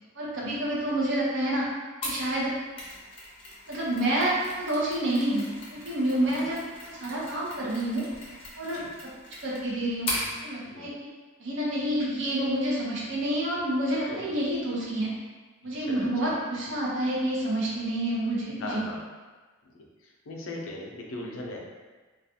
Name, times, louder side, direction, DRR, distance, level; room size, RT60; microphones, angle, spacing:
voice 1, 0.2-1.6 2.0-2.5 3.7-5.5 5.7-6.6 6.8-8.0 8.6-8.8 9.4-10.1 10.4-11.1 11.4-15.1 15.6-18.8, right 1 dB, 65° right, -5 dB, 0.7 m, -28 dB
Mechanisms, 2.0-10.3, left 1 dB, 25° left, 0.5 m, -39 dB
voice 2, 6.1-6.4 8.6-8.9 10.6-10.9 14.1-14.3 15.8-16.3 18.6-19.0 20.0-21.6, left 2 dB, 80° left, -1 dB, 0.5 m, -39 dB
2.4 x 2.3 x 2.7 m, 1.3 s
head